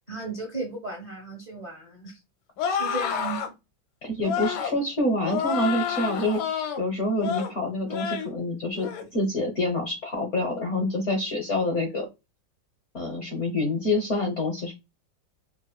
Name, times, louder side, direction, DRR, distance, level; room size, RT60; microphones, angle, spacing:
voice 1, 0.1-2.2 2.7-3.5, right 3 dB, 50° right, 0.5 m, -35 dB
sound 1, 2.6-3.5 4.2-4.8 5.2-6.8 7.2-7.5 7.9-8.3 8.7-9.1, left 7 dB, 85° left, 1.5 m, -29 dB
voice 2, 4.0-12.1 12.9-14.7, left 1 dB, 60° left, 0.7 m, -27 dB
4.1 x 2.3 x 2.2 m
omnidirectional pair, 2.1 m